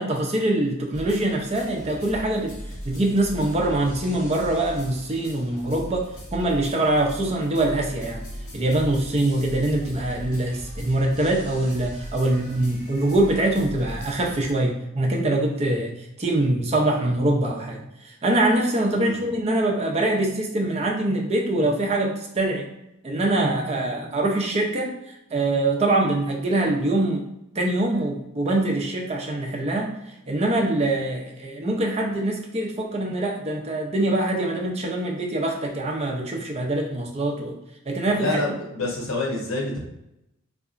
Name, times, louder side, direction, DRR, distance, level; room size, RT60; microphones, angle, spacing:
voice 1, 0.0-2.6 2.8-8.3 8.5-15.9 16.2-22.7 23.0-24.9 25.3-27.3 27.6-29.9 30.3-37.6 37.9-38.3, right 1 dB, 30° right, 0 dB, 0.6 m, -24 dB
sound 1, 0.9-14.5, equal, 40° left, 1.4 m, -39 dB
voice 2, 38.2-39.8, left 1 dB, 80° left, -1 dB, 1.0 m, -27 dB
3.6 x 2.8 x 2.5 m, 0.86 s
head